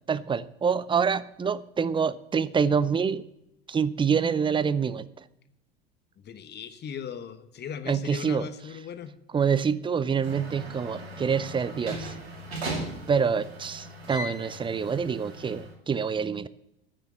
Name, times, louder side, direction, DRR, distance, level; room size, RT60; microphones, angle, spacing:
voice 1, 0.1-3.2 3.7-5.2 7.9-8.5 9.3-12.2 13.1-16.5, right 6 dB, 15° right, 18 dB, 0.5 m, -26 dB
voice 2, 6.2-9.1, left 7 dB, 35° left, 11 dB, 1.2 m, -38 dB
sound 1, 10.2-15.7, right 1 dB, 85° right, 2.4 m, -38 dB
9.7 x 7.1 x 7.7 m, 0.84 s
hypercardioid pair, 75°, 31 cm